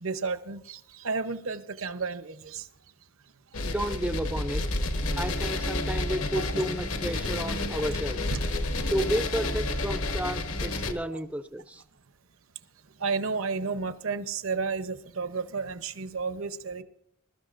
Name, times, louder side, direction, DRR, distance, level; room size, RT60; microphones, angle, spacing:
voice 1, 0.0-2.7 6.5-6.6 8.3-8.4 11.1-11.2 13.0-16.8, right 4 dB, 70° right, 11 dB, 0.8 m, -32 dB
sound 1, 3.5-10.9, left 2 dB, 75° left, 1.3 m, -30 dB
voice 2, 3.6-4.7 5.2-8.2 8.9-11.8, right 1 dB, 5° right, 9 dB, 0.4 m, -32 dB
21.5 x 12.5 x 2.5 m, 0.71 s
head